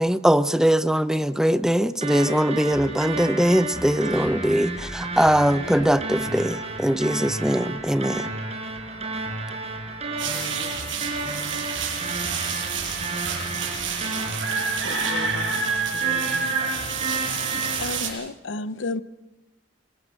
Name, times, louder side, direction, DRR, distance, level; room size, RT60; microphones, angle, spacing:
voice 1, 0.0-8.3, equal, 5° right, 0.7 m, -21 dB
sound 1, 2.0-18.0, right 3 dB, 35° right, 5.3 m, -32 dB
sound 2, 10.2-18.1, right 5 dB, 80° right, 7.4 m, -28 dB
voice 2, 10.3-10.8 14.8-16.5, left 2 dB, 50° left, 2.5 m, -39 dB
voice 3, 17.8-19.0, left 3 dB, 80° left, 0.8 m, -31 dB
27.0 x 19.5 x 6.3 m
head